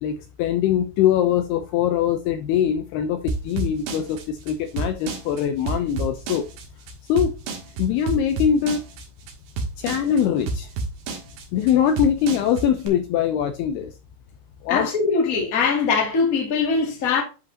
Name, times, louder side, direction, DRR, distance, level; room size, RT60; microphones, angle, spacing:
voice 1, 0.0-6.5 7.1-7.3 7.8-8.8 9.8-10.7 11.5-13.9 14.6-14.9, left 9 dB, 75° left, 2.5 m, -22 dB
sound 1, 3.3-12.9, right 3 dB, 65° right, 3.2 m, -30 dB
voice 2, 14.7-17.2, left 5 dB, 30° left, 1.6 m, -21 dB
10.5 x 5.0 x 2.9 m
omnidirectional pair, 5.1 m